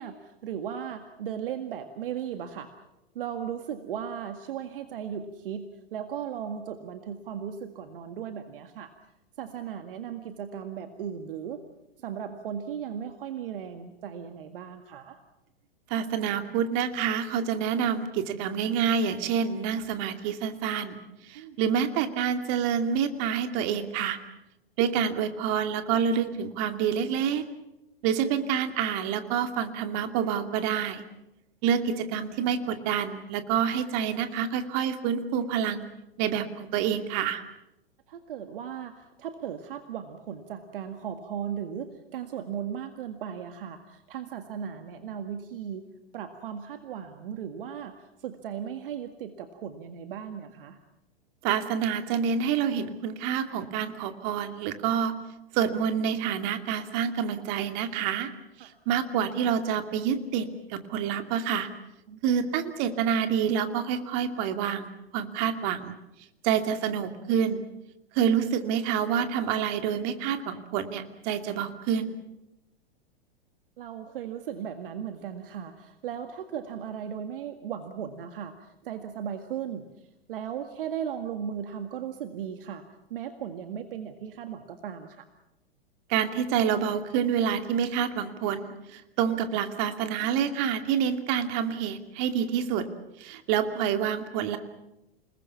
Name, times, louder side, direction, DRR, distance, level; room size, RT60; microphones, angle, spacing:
voice 1, 0.0-2.7 3.2-8.9 9.4-11.6 12.0-15.2 21.3-21.6 38.1-45.9 46.1-50.8 58.6-58.7 62.1-62.2 73.8-82.8 83.1-85.3 93.3-93.4, right 8 dB, 65° right, 8 dB, 1.9 m, -37 dB
voice 2, 15.9-24.2 24.8-27.4 28.0-31.0 31.6-35.8 36.2-37.4 51.4-55.1 55.5-58.3 58.6-61.7 62.2-66.0 66.4-67.6 68.1-72.1 86.1-92.9 93.2-94.6, right 8 dB, 45° right, 8 dB, 2.6 m, -27 dB
28.5 x 20.0 x 7.1 m, 0.90 s
hypercardioid pair, 100°, 30 cm